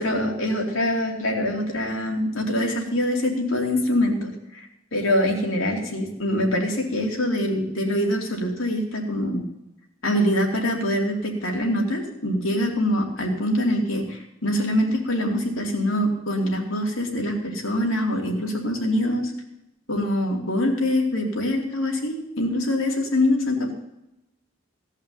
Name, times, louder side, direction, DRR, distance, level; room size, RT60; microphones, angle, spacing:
voice 1, 0.0-4.7 4.9-9.4 10.0-19.3 19.9-23.7, left 1 dB, 75° left, 0 dB, 2.9 m, -24 dB
16.5 x 5.7 x 8.9 m, 0.88 s
head